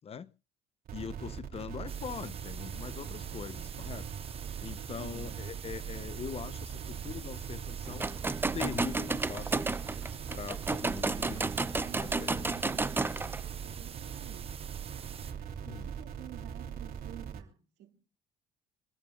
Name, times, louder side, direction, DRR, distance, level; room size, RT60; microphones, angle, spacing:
voice 1, 0.9-4.1 4.6-8.1 8.5-9.7 10.3-11.4 12.0-12.4 15.6-15.9, left 7 dB, 35° left, 0.8 m, -42 dB
sound 1, 0.9-17.4, right 8 dB, 60° right, 3.0 m, -41 dB
sound 2, 1.9-15.3, right 7 dB, 35° right, 1.0 m, -48 dB
voice 2, 4.9-5.4 11.0-13.1 13.6-14.5 15.1-18.0, right 13 dB, 85° right, 2.5 m, -51 dB
sound 3, 7.9-13.4, right 3 dB, 10° right, 0.6 m, -32 dB
26.5 x 14.5 x 2.4 m
cardioid pair, 110°, 17 cm